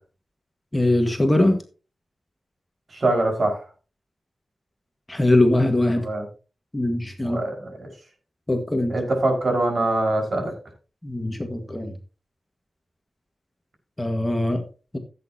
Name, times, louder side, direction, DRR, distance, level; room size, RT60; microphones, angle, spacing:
voice 1, 0.7-1.6 5.1-6.1 6.7-7.4 8.5-8.9 11.0-11.9 14.0-14.6 14.9-15.0, left 1 dB, 15° left, 5 dB, 1.6 m, -21 dB
voice 2, 2.9-3.6 6.0-6.2 7.2-7.9 8.9-10.5, right 2 dB, 45° right, 2 dB, 5.1 m, -23 dB
16.0 x 8.5 x 2.8 m, 0.35 s
wide cardioid pair, 90°, 0 cm